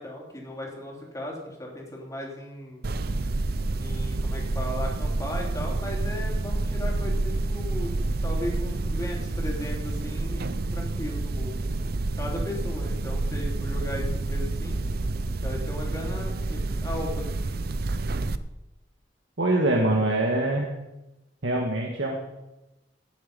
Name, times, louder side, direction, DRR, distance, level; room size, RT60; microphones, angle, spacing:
voice 1, 0.0-2.8 3.8-8.0 8.2-10.4 10.7-11.5 12.2-14.9 15.4-17.3, left 1 dB, 20° left, -2 dB, 3.3 m, -36 dB
sound 1, 2.8-18.4, right 2 dB, 55° right, 0.6 m, -29 dB
voice 2, 19.4-20.7 21.4-22.2, right 1 dB, 85° right, 0 dB, 1.7 m, -24 dB
18.0 x 7.7 x 5.4 m, 0.97 s
head